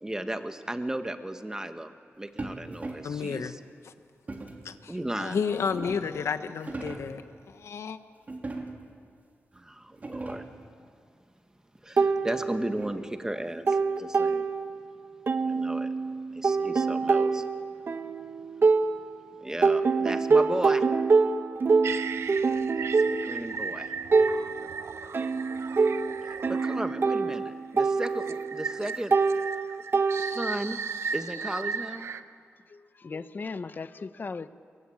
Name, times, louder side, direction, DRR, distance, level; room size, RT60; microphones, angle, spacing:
voice 1, 0.0-3.6 4.9-5.4 9.5-10.4 11.8-14.5 15.5-15.9 16.3-17.4 19.4-20.9 22.8-23.9 26.2-29.1 30.2-30.8 31.1-32.1, right 1 dB, 15° right, 8 dB, 1.5 m, -35 dB
sound 1, 2.4-3.2 4.3-4.7 5.3-6.2 6.6-7.2 8.3-9.0 9.5-9.6 9.9-10.6 12.0-13.2, right 2 dB, 35° right, 3.3 m, -40 dB
voice 2, 3.0-3.6 3.8-3.9 4.6-7.2 7.5-8.0, left 6 dB, 85° left, 10 dB, 1.1 m, -31 dB
sound 2, 12.0-13.1 13.4-14.9 15.3-19.3 19.6-30.7, right 4 dB, 55° right, 1.1 m, -26 dB
sound 3, 21.8-27.1 28.0-32.2, right 5 dB, 75° right, 0.9 m, -36 dB
voice 3, 32.7-34.5, left 4 dB, 45° left, 13 dB, 0.9 m, -37 dB
23.0 x 22.5 x 8.9 m, 2.2 s
wide cardioid pair, 95°, 5 cm